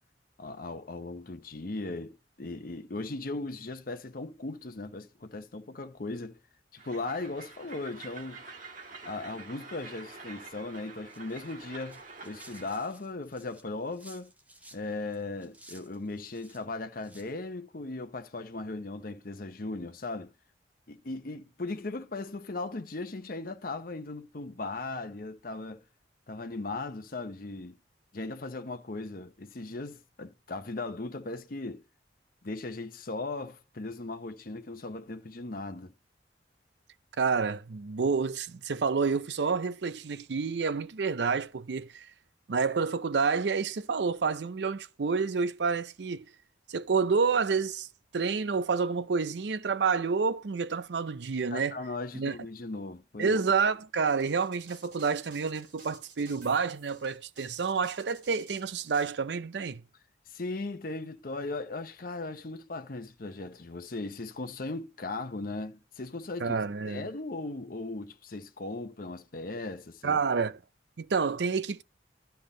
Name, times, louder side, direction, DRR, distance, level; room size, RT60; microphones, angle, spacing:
voice 1, 0.4-6.4 6.7-8.4 9.0-14.3 14.7-20.3 20.9-25.8 26.3-27.8 28.1-31.8 32.4-35.9 51.5-53.4 60.3-66.6 66.9-70.2, left 2 dB, 50° left, 0.8 m, -38 dB
Train, 6.8-12.8, right 4 dB, 45° right, 1.8 m, -47 dB
sound 1, 11.1-14.8 15.1-16.6 17.0-17.3, right 1 dB, 10° right, 1.2 m, -55 dB
voice 2, 37.2-42.1 42.5-46.3 46.7-47.9 48.1-51.8 52.1-52.3 53.2-59.8 66.4-67.1 70.0-70.6 71.0-71.8, right 5 dB, 70° right, 0.5 m, -29 dB
sound 2, 54.0-59.1, right 5 dB, 85° right, 3.4 m, -53 dB
12.0 x 5.6 x 3.8 m
head